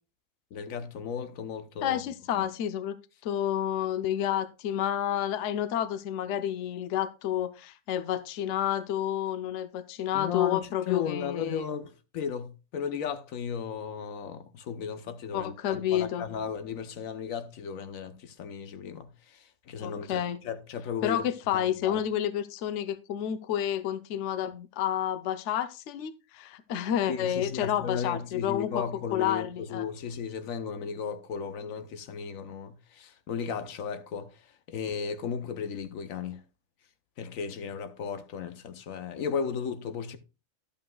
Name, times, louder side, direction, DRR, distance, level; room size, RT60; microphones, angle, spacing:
voice 1, 0.5-2.0 2.3-2.5 10.1-21.2 21.5-22.0 27.1-36.4 37.2-40.2, left 7 dB, 90° left, 1.2 m, -35 dB
voice 2, 1.8-2.9 3.2-11.7 15.3-16.2 19.8-20.4 21.0-28.8 29.1-29.8, left 10 dB, 70° left, 0.9 m, -30 dB
11.5 x 8.5 x 2.2 m
omnidirectional pair, 1.4 m